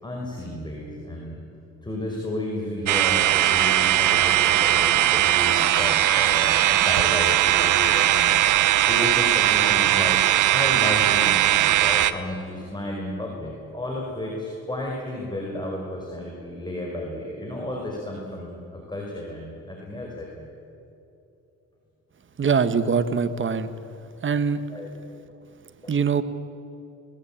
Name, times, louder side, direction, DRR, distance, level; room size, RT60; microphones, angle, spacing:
voice 1, 0.0-1.4 1.8-8.4 8.9-20.5 24.7-24.9 25.8-25.9, left 1 dB, 15° left, -1 dB, 5.1 m, -32 dB
sound 1, 2.9-12.1, right 13 dB, 80° right, 1.1 m, -19 dB
voice 2, 22.4-23.7 24.2-24.6 25.9-26.2, right 6 dB, 40° right, 11 dB, 1.6 m, -22 dB
21.0 x 20.5 x 9.0 m, 2.9 s
cardioid pair, 90°, 30 cm